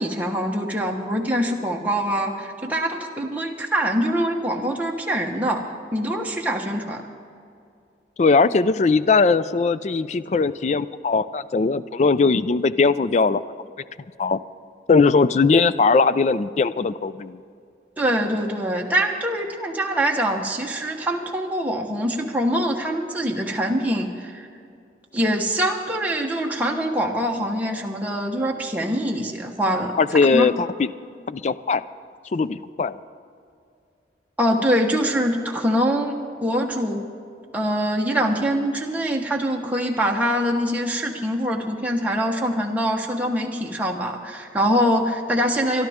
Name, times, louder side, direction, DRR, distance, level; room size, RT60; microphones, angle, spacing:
voice 1, 0.0-7.0 18.0-24.5 25.1-30.0 30.3-30.4 34.4-37.0 37.5-45.9, equal, 10° right, -1 dB, 1.2 m, -24 dB
voice 2, 8.2-13.4 14.2-14.4 14.9-17.4 30.0-30.9 31.3-31.8 32.3-33.0, left 4 dB, 40° left, 15 dB, 0.4 m, -19 dB
23.5 x 12.0 x 3.6 m, 2.4 s
head